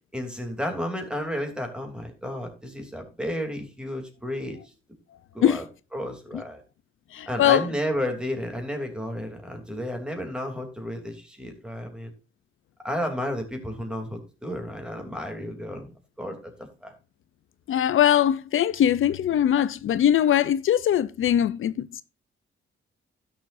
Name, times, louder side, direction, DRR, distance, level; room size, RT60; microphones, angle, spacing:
voice 1, 0.1-4.6 5.3-5.6 5.9-6.6 7.3-12.1 12.8-15.9 16.2-16.9, equal, 5° right, 3.0 m, -32 dB
voice 2, 7.1-7.6 17.7-22.0, left 10 dB, 70° left, 0.6 m, -21 dB
16.5 x 7.1 x 2.6 m
wide cardioid pair, 150°, 21 cm